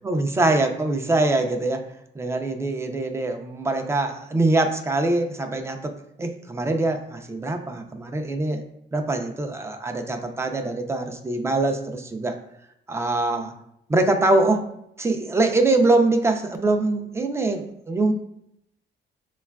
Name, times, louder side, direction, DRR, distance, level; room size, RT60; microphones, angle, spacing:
voice 1, 0.0-1.8 2.2-5.9 6.2-8.6 8.9-12.3 12.9-13.5 13.9-14.7 15.0-18.1, right 2 dB, 15° right, 5 dB, 0.4 m, -23 dB
5.1 x 2.3 x 2.2 m, 0.78 s
cardioid pair, 90°, 20 cm